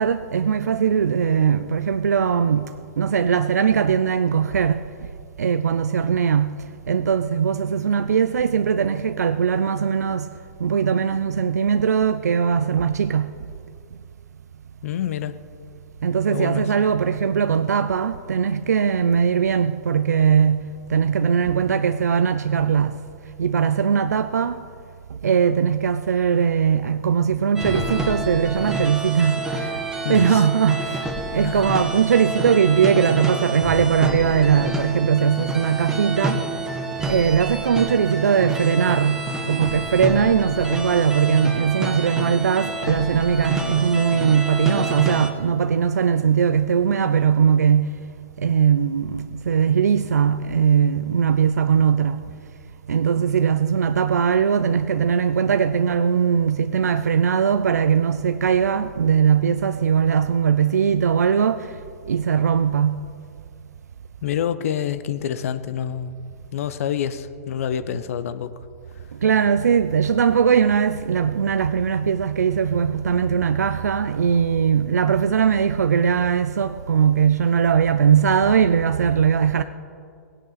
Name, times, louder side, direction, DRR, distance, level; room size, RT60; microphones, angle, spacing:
voice 1, 0.0-2.7 3.0-5.1 5.4-6.5 6.9-10.3 10.6-13.5 16.0-20.6 20.9-23.0 23.4-24.6 25.2-29.8 30.1-31.0 31.3-36.4 37.1-39.2 39.5-47.9 48.4-52.2 52.9-61.7 62.1-63.0 69.2-79.6, right 7 dB, 80° right, 0.5 m, -20 dB
voice 2, 14.8-15.4 16.3-16.7 30.0-30.5 31.4-31.6 64.2-66.2 66.5-68.5, left 9 dB, 60° left, 0.8 m, -27 dB
sound 1, 27.6-45.3, right 1 dB, 5° right, 1.8 m, -28 dB
18.0 x 16.5 x 4.1 m
hypercardioid pair, 115°, 9 cm